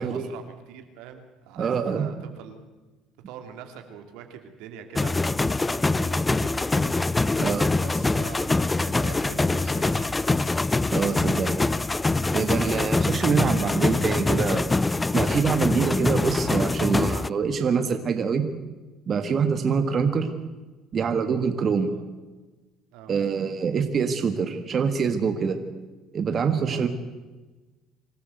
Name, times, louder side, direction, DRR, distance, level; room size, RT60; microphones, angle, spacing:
voice 1, 0.0-2.7 3.3-7.4 7.8-10.3 21.9-22.0 22.9-23.1 26.6-26.8, right 8 dB, 80° right, 6 dB, 2.8 m, -43 dB
voice 2, 1.6-2.0 7.4-7.7 10.9-11.6 12.3-14.7 15.1-18.5 19.1-20.3 20.9-21.9 23.1-25.6 26.1-26.9, right 6 dB, 45° right, 7 dB, 1.8 m, -25 dB
sound 1, 5.0-17.3, left 3 dB, 15° left, 0.5 m, -24 dB
25.5 x 13.5 x 8.0 m, 1.2 s
supercardioid pair, 85°, 0 cm